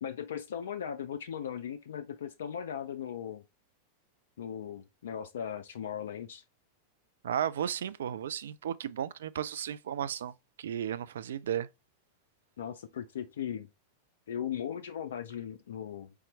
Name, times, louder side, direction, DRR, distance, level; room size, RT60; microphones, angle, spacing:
voice 1, 0.0-3.4 4.4-6.4 12.6-13.7 14.3-16.1, left 9 dB, 60° left, 0.4 m, -38 dB
voice 2, 7.2-11.7, right 9 dB, 60° right, 0.3 m, -34 dB
4.3 x 3.5 x 3.0 m
figure-of-eight pair, 90°, 0 cm